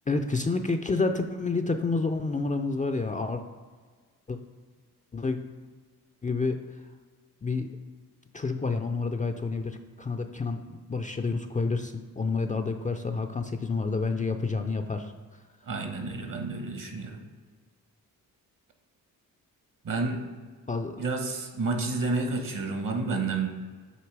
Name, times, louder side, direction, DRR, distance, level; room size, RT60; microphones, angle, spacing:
voice 1, 0.1-3.4 4.3-4.4 5.1-5.4 6.2-6.6 7.4-7.7 8.3-15.1 20.7-21.0, left 3 dB, 20° left, 5 dB, 0.4 m, -29 dB
voice 2, 15.6-17.2 19.8-20.2 21.0-23.5, right 3 dB, 60° right, 4 dB, 1.2 m, -30 dB
8.1 x 2.8 x 4.7 m, 1.5 s
cardioid pair, 60°, 38 cm